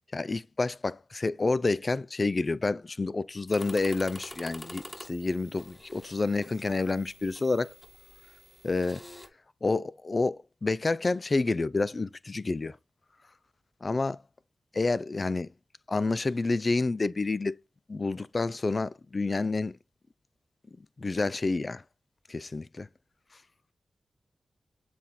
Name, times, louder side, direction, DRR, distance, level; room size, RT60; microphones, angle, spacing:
voice 1, 0.1-7.7 8.6-9.0 9.6-12.8 13.8-14.2 14.7-15.5 15.9-17.6 17.9-19.8 21.0-21.8 22.3-22.9, left 3 dB, 45° left, 0.5 m, -29 dB
sound 1, 3.5-9.3, left 1 dB, 15° left, 1.7 m, -47 dB
7.2 x 4.3 x 3.7 m
cardioid pair, 55°, 0 cm